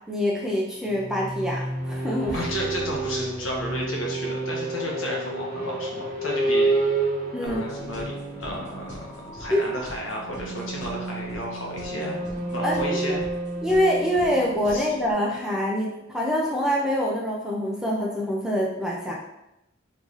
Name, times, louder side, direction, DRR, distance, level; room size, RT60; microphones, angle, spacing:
voice 1, 0.1-2.4 7.3-7.6 9.5-9.7 12.6-13.2 13.6-19.1, equal, 5° right, -3 dB, 0.5 m, -25 dB
sound 1, 0.8-15.5, right 2 dB, 40° right, 1.0 m, -30 dB
sound 2, 2.2-4.4, right 1 dB, 20° left, 1.3 m, -40 dB
voice 2, 2.3-6.7 7.4-8.1 8.4-12.2 12.5-13.2 14.7-14.9, equal, 70° left, -2 dB, 1.1 m, -32 dB
sound 3, 7.5-15.1, equal, 35° left, 1.4 m, -44 dB
3.7 x 3.2 x 3.9 m, 0.88 s
head